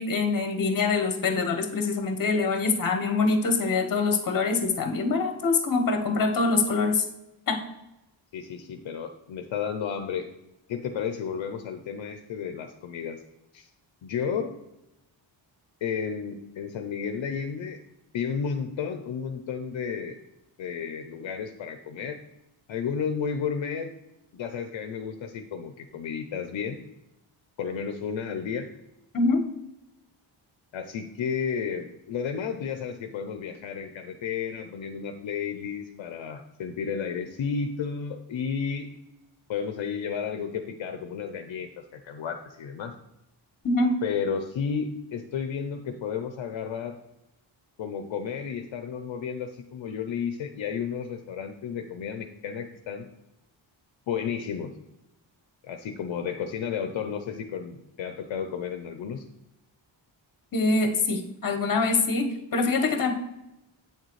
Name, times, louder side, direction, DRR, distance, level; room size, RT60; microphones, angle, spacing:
voice 1, 0.0-7.0 7.5-7.6 29.1-29.4 43.6-44.0 60.5-62.3 62.5-63.1, left 3 dB, 45° left, 5 dB, 1.1 m, -24 dB
voice 2, 8.3-10.3 10.7-13.2 13.5-13.7 14.0-14.5 15.8-17.8 18.1-20.2 20.6-22.2 22.7-23.9 24.3-26.8 27.6-28.7 30.7-38.9 39.5-42.9 44.0-47.0 47.8-53.1 54.1-54.7 55.6-59.2, left 6 dB, 70° left, 6 dB, 0.7 m, -32 dB
8.4 x 6.6 x 3.1 m, 0.92 s
wide cardioid pair, 150°, 47 cm